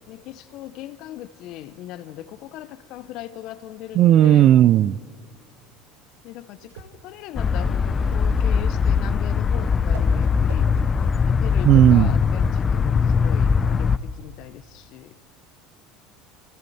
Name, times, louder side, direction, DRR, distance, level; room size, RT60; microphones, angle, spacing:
voice 1, 0.1-4.5 6.2-10.7 11.2-15.1, left 13 dB, 60° left, 0.9 m, -39 dB
voice 2, 3.9-5.0 11.6-12.1, right 12 dB, 50° right, 0.5 m, -14 dB
Whoosh swoosh swish, 6.2-11.7, right 6 dB, 80° right, 1.8 m, -45 dB
sound 1, 7.3-14.0, left 6 dB, 30° left, 0.7 m, -21 dB
27.5 x 27.0 x 4.3 m
hypercardioid pair, 85°, 0 cm